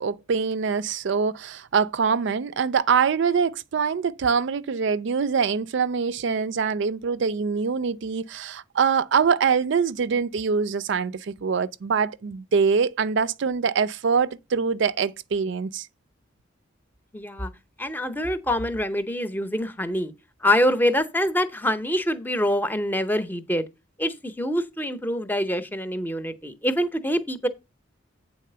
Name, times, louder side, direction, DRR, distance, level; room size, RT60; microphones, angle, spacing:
voice 1, 0.0-15.9, right 6 dB, 60° right, 0.4 m, -24 dB
voice 2, 17.1-17.5 17.8-20.1 20.4-23.7 24.0-27.5, equal, 10° left, 0.7 m, -25 dB
8.4 x 4.1 x 6.7 m
head